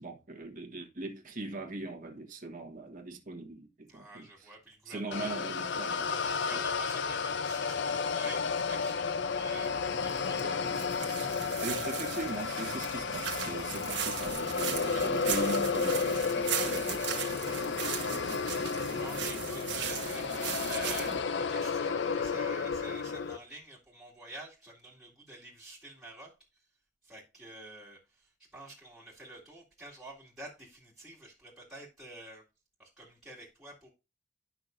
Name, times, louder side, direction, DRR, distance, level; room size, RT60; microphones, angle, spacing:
voice 1, 0.0-4.5 4.8-6.6 11.6-18.2, right 2 dB, 45° right, 1.3 m, -41 dB
voice 2, 3.9-5.3 5.9-9.7 10.0-10.7 18.5-26.3 27.0-28.0 28.5-32.4 32.8-33.9, right 2 dB, 5° right, 2.2 m, -48 dB
sound 1, 5.1-23.4, left 5 dB, 65° left, 0.5 m, -32 dB
sound 2, 9.6-21.2, right 8 dB, 65° right, 1.4 m, -38 dB
11.0 x 5.8 x 2.6 m
head